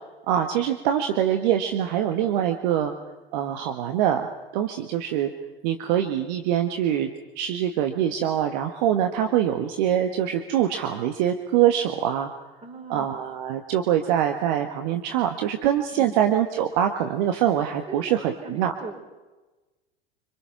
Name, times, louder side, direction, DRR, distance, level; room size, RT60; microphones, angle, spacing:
voice 1, 0.3-2.9 3.3-4.3 4.5-5.3 5.6-12.3 12.9-18.7, right 10 dB, 50° right, 6 dB, 1.7 m, -24 dB
voice 2, 12.6-13.1 16.0-16.2 17.9-19.0, right 4 dB, 20° right, 5 dB, 5.0 m, -39 dB
26.5 x 25.5 x 6.0 m, 1.1 s
figure-of-eight pair, 80°, 29 cm